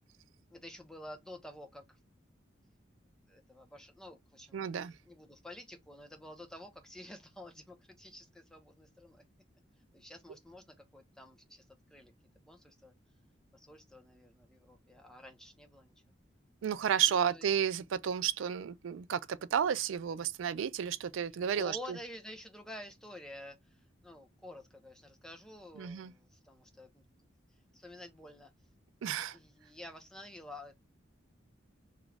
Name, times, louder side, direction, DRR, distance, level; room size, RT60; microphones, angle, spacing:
voice 1, 0.5-2.0 3.3-4.6 5.0-9.2 9.9-11.6 11.9-12.1 12.5-12.9 13.5-15.9 17.1-17.5 21.5-27.0 27.7-28.5 29.2-30.7, left 1 dB, 5° left, 0.6 m, -50 dB
voice 2, 4.5-4.9 16.6-22.0 25.8-26.1 29.0-29.4, right 8 dB, 90° right, 0.3 m, -32 dB
3.0 x 2.4 x 3.2 m
head